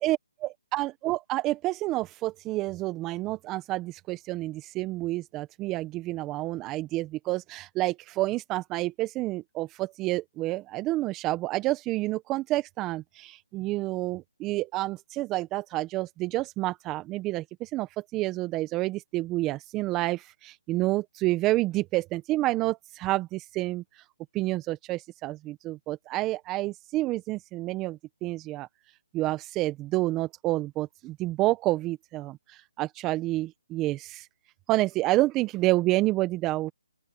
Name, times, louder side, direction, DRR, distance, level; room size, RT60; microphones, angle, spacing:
voice 1, 0.4-24.0 24.3-28.7 29.1-34.3 34.7-36.7, right 18 dB, 15° right, 1.2 m, -29 dB
open air
figure-of-eight pair, 150°, 0 cm